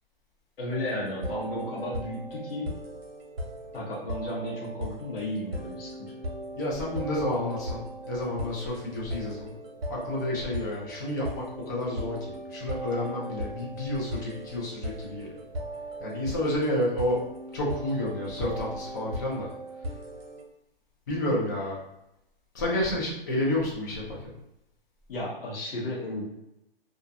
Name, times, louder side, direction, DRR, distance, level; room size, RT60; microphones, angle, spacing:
voice 1, 0.6-2.7 3.7-6.1 25.1-26.2, left 1 dB, 70° left, -4 dB, 0.9 m, -34 dB
sound 1, 0.7-20.4, right 1 dB, 75° right, 0.7 m, -38 dB
voice 2, 6.6-9.5 9.9-15.3 16.0-17.2 17.5-19.5 21.1-21.8 22.5-24.3, left 1 dB, 20° left, -4 dB, 0.4 m, -30 dB
2.4 x 2.3 x 2.5 m, 0.86 s
hypercardioid pair, 150°, 30 cm